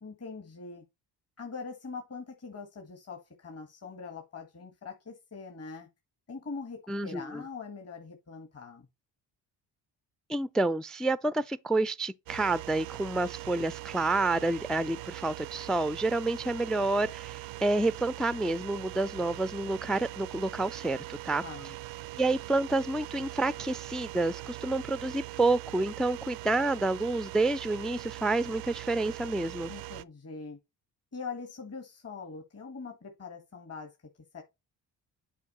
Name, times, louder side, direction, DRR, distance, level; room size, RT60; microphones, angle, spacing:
voice 1, 0.0-0.8 1.4-5.9 6.3-8.9 21.4-21.7 29.7-30.6 31.1-34.0 34.3-34.4, left 4 dB, 35° left, 1.6 m, -42 dB
voice 2, 6.9-7.4 10.3-21.4 22.2-29.7, right 2 dB, ahead, 0.3 m, -29 dB
sound 1, 12.3-30.0, right 19 dB, 80° right, 0.5 m, -42 dB
8.4 x 4.6 x 4.2 m
supercardioid pair, 55°, 44 cm